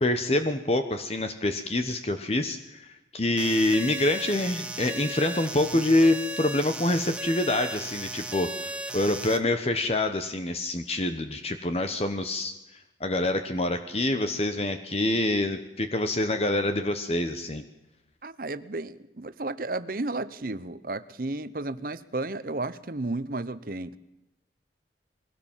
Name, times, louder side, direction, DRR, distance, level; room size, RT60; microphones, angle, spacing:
voice 1, 0.0-12.5 13.0-17.6, left 1 dB, 35° left, 8 dB, 1.0 m, -26 dB
sound 1, 3.4-9.4, right 2 dB, 5° right, 1.0 m, -36 dB
voice 2, 18.2-24.0, right 2 dB, 50° right, 14 dB, 0.9 m, -33 dB
22.0 x 17.0 x 7.4 m, 0.96 s
head